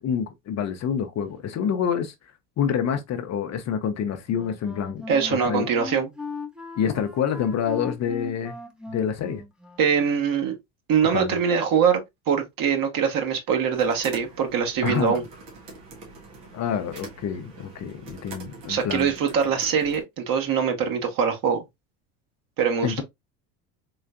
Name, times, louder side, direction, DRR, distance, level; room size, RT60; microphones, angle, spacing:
voice 1, 0.0-2.1 2.6-5.0 5.3-5.7 6.8-8.6 8.9-9.4 11.1-11.4 14.8-15.2 16.5-19.1 22.8-23.0, left 8 dB, 35° left, 0.6 m, -27 dB
Wind instrument woodwind instrument, 4.3-10.2, left 3 dB, ahead, 0.7 m, -38 dB
voice 2, 5.1-6.1 9.8-10.5 10.9-12.0 12.3-15.2 18.7-21.6 22.6-23.0, right 7 dB, 45° right, 1.2 m, -23 dB
sound 1, 13.7-20.0, right 3 dB, 85° right, 1.6 m, -44 dB
3.8 x 3.2 x 2.4 m
hypercardioid pair, 80°, 45 cm